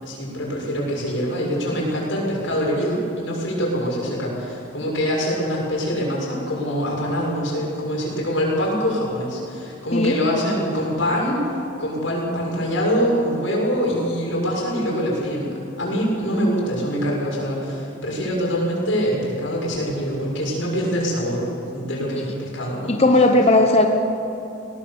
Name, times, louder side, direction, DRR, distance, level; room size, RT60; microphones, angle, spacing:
voice 1, 0.0-15.5 15.8-21.5 21.7-22.9, equal, 90° left, -3 dB, 7.0 m, -24 dB
voice 2, 22.9-23.9, left 2 dB, 30° left, 3 dB, 1.0 m, -16 dB
21.5 x 19.0 x 7.2 m, 2.9 s
head